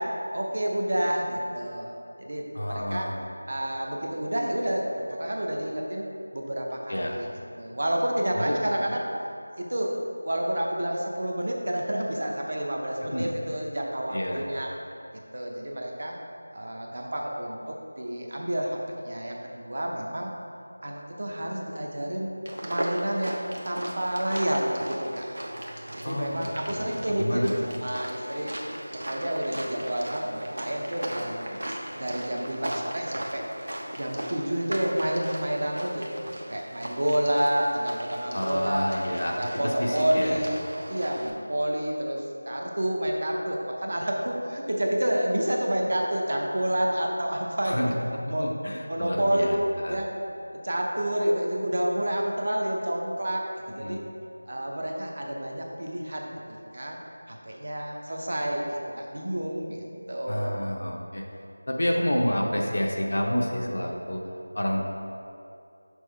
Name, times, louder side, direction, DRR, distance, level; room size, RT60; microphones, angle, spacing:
voice 1, 0.0-1.9 2.2-3.1 3.4-6.1 6.3-7.3 7.6-9.0 9.5-14.7 15.3-16.1 16.5-18.8 19.0-20.3 20.8-22.3 22.6-25.3 25.9-28.5 28.9-33.5 34.0-36.2 36.5-40.6 40.9-47.8 48.3-48.5 48.9-49.5 49.9-50.1 50.5-54.0 54.5-57.0 57.3-60.7, right 1 dB, 45° right, 0 dB, 0.9 m, -29 dB
voice 2, 2.5-3.2 6.9-7.2 8.3-8.6 13.1-13.3 14.1-14.4 26.0-27.5 38.3-40.4 47.6-47.9 48.3-50.0 53.7-54.0 60.3-61.2 61.7-64.2 64.5-64.9, equal, 55° left, 0 dB, 0.8 m, -29 dB
sound 1, 22.5-41.3, right 1 dB, 70° right, 1.0 m, -37 dB
6.3 x 6.1 x 3.3 m, 2.6 s
figure-of-eight pair, 175°, 0 cm